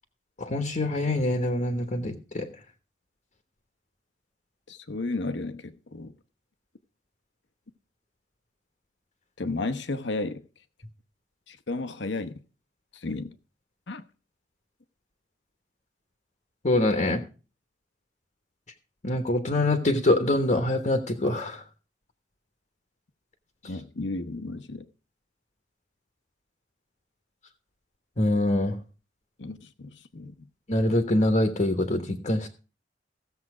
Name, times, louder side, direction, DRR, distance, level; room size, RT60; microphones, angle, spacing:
voice 1, 0.4-2.5 16.6-17.2 19.0-21.6 28.2-28.8 30.7-32.5, left 1 dB, 40° left, 1.2 m, -24 dB
voice 2, 4.7-6.1 9.4-10.4 11.5-12.4 12.9-13.3 13.9-14.0 23.7-24.8 29.4-30.5, left 2 dB, 70° left, 1.0 m, -33 dB
15.5 x 7.4 x 4.9 m
head